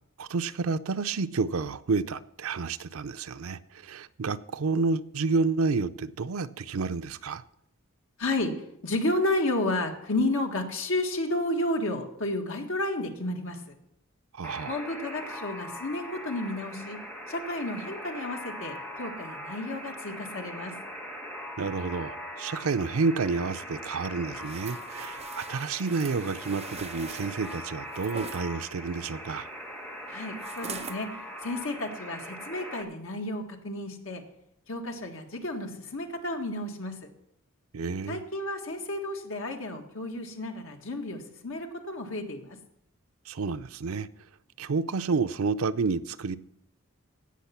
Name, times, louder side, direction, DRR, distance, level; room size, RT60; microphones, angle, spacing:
voice 1, 0.2-7.4 14.3-14.8 21.6-29.5 37.7-38.2 43.3-44.1 44.6-46.4, right 4 dB, 85° right, 0.5 m, -30 dB
voice 2, 8.2-8.5 8.8-13.6 14.7-17.0 17.3-20.8 30.1-31.1 31.4-34.2 34.7-37.0 38.1-42.6, left 1 dB, 75° left, 1.7 m, -32 dB
Alarm, 14.4-32.8, equal, 5° left, 1.4 m, -41 dB
sound 1, 24.4-28.4 30.4-31.0 31.6-31.7, right 6 dB, 30° right, 0.7 m, -43 dB
16.5 x 6.5 x 5.8 m
head